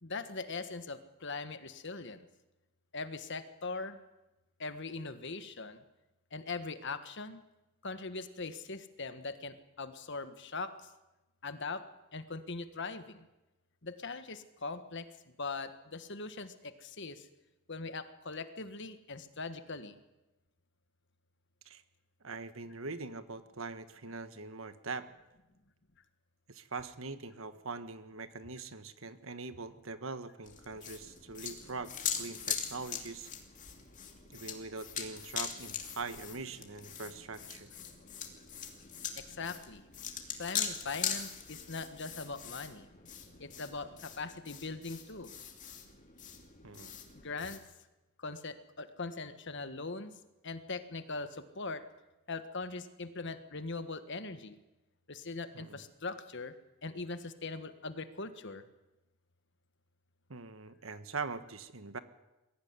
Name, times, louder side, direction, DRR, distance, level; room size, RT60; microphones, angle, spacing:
voice 1, 0.0-2.2 2.9-4.0 4.6-5.8 6.3-7.4 7.8-10.9 11.4-11.9 12.1-13.3 13.8-17.3 17.7-20.0 39.2-39.8 40.4-42.9 43.4-45.3 47.1-47.6 48.2-50.1 50.4-51.8 52.3-54.6 55.1-56.5 56.8-58.6, left 3 dB, 55° left, 10 dB, 1.6 m, -41 dB
voice 2, 22.2-25.1 26.5-33.3 34.3-37.7 46.6-46.9 55.5-55.8 60.3-62.0, right 4 dB, 65° right, 11 dB, 1.5 m, -42 dB
sound 1, 30.4-47.6, left 8 dB, 35° left, 2.7 m, -41 dB
22.0 x 16.0 x 9.6 m, 1.0 s
head